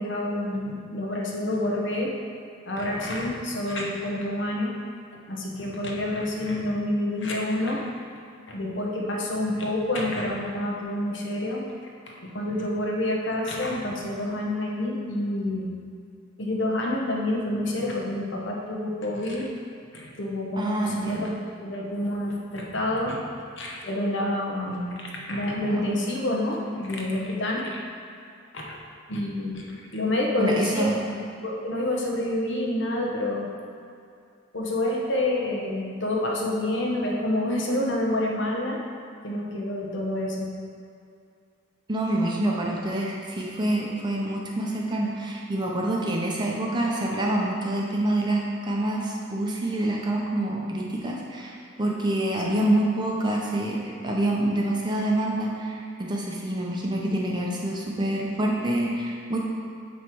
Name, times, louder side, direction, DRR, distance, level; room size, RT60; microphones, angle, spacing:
voice 1, 0.0-2.1 2.6-4.8 5.3-7.9 8.5-11.6 12.2-15.7 16.4-19.5 19.9-21.3 21.6-23.2 23.6-27.8 28.5-28.8 29.1-31.2 31.4-33.5 34.5-38.8 39.2-40.5 52.5-52.6, left 1 dB, 55° left, -2 dB, 0.9 m, -28 dB
voice 2, 20.6-21.3 25.6-25.9 30.4-31.0 41.9-59.4, right 1 dB, 20° right, -2 dB, 0.6 m, -27 dB
9.4 x 3.2 x 4.5 m, 2.4 s
head